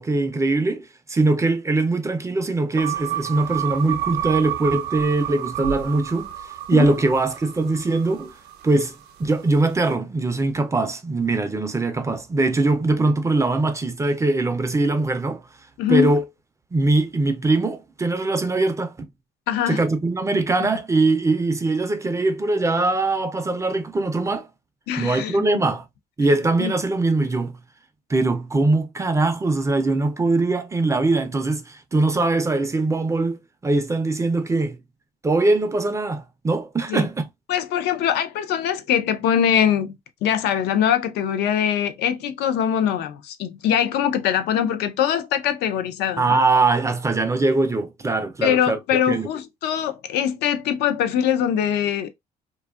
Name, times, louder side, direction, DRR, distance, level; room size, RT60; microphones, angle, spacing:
voice 1, 0.0-8.3 8.6-15.4 15.9-16.2 16.7-19.1 19.7-24.5 25.0-25.8 26.2-27.6 28.1-34.8 35.2-37.3 46.2-48.8 49.1-49.3, right 2 dB, 15° right, 0.4 m, -22 dB
sound 1, 2.8-9.1, right 12 dB, 75° right, 0.6 m, -30 dB
voice 2, 15.8-16.1 19.5-19.8 20.6-20.7 24.9-25.6 26.6-26.7 36.9-37.1 37.5-46.4 48.4-52.1, left 9 dB, 80° left, 0.5 m, -22 dB
2.6 x 2.3 x 2.3 m
cardioid pair, 110°, 17 cm